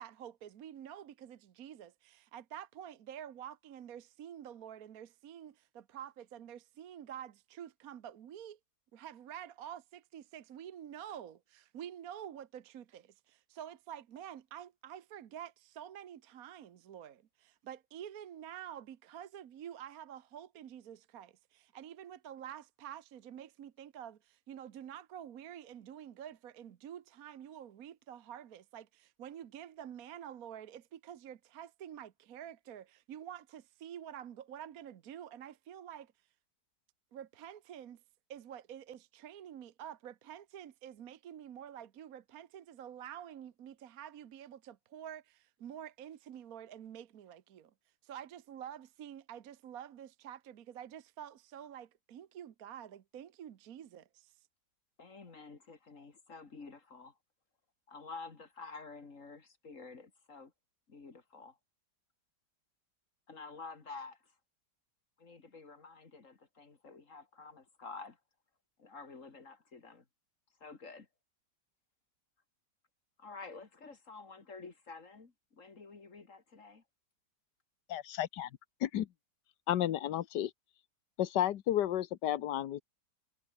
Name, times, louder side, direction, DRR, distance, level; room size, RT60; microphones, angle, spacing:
voice 1, 0.0-8.6 8.9-36.1 37.1-38.0 38.3-47.7 48.0-54.3, right 10 dB, 60° right, 1.3 m, -48 dB
voice 2, 55.0-57.2 57.9-60.5 60.9-61.6 63.3-64.3 65.2-68.2 68.8-70.0 70.6-71.1 73.2-76.8, left 4 dB, 45° left, 2.6 m, -50 dB
voice 3, 77.9-78.5 78.8-79.1 79.7-80.5 81.2-82.8, left 12 dB, 75° left, 1.5 m, -32 dB
omnidirectional pair, 1.9 m